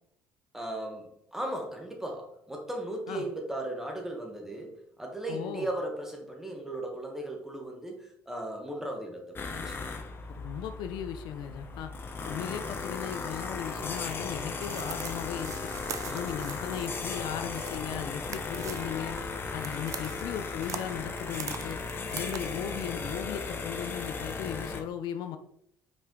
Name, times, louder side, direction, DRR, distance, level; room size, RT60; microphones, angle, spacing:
voice 1, 0.5-9.8 16.1-16.3 22.1-22.3, right 1 dB, 5° right, 1 dB, 1.3 m, -37 dB
voice 2, 5.3-5.7 10.3-11.9 12.2-15.5 16.1-19.2 19.5-21.8 22.1-25.4, left 9 dB, 80° left, 8 dB, 0.6 m, -37 dB
sound 1, 9.4-24.8, left 4 dB, 30° left, 0.8 m, -36 dB
sound 2, 14.3-22.8, right 8 dB, 45° right, 0.5 m, -44 dB
5.4 x 4.6 x 3.8 m, 0.71 s
cardioid pair, 125°, 8 cm